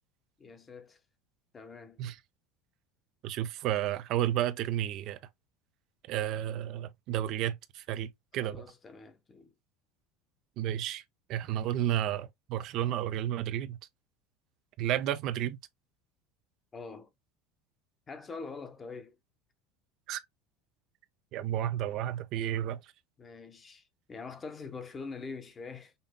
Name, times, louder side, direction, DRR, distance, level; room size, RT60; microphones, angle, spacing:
voice 1, 0.4-1.0 1.5-2.0 8.4-9.5 16.7-17.1 18.1-19.2 23.2-25.9, left 4 dB, 25° left, 0.9 m, -44 dB
voice 2, 3.2-5.2 6.1-8.6 10.6-11.0 11.3-13.8 14.8-15.6 20.1-20.2 21.3-22.8, right 12 dB, 60° right, 0.5 m, -32 dB
5.4 x 2.6 x 2.2 m
supercardioid pair, 95°, 0 cm